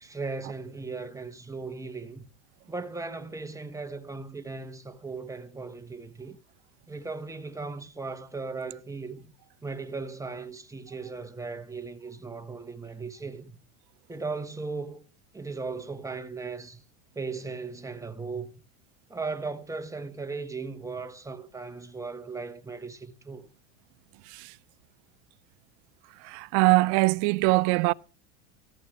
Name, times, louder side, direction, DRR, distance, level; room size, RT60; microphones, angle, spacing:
voice 1, 0.0-2.2 2.7-6.4 6.9-9.3 9.6-13.6 14.1-15.0 15.3-16.8 17.1-18.5 19.1-23.5, right 4 dB, 5° right, 1.2 m, -37 dB
voice 2, 26.2-27.9, right 25 dB, 55° right, 0.5 m, -22 dB
14.5 x 10.5 x 3.6 m
hypercardioid pair, 95°, 42 cm